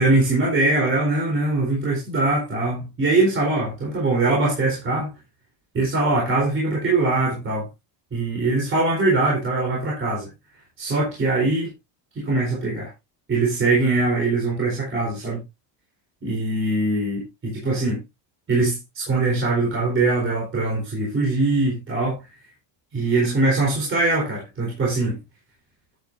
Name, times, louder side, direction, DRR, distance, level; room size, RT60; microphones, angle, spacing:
voice 1, 0.0-5.1 5.7-7.7 8.1-10.3 10.8-11.7 12.1-12.9 13.3-15.4 16.2-18.0 18.5-22.2 22.9-25.2, right 2 dB, 25° right, 4.1 m, -22 dB
10.0 x 9.2 x 2.6 m
cardioid pair, 155°, 46 cm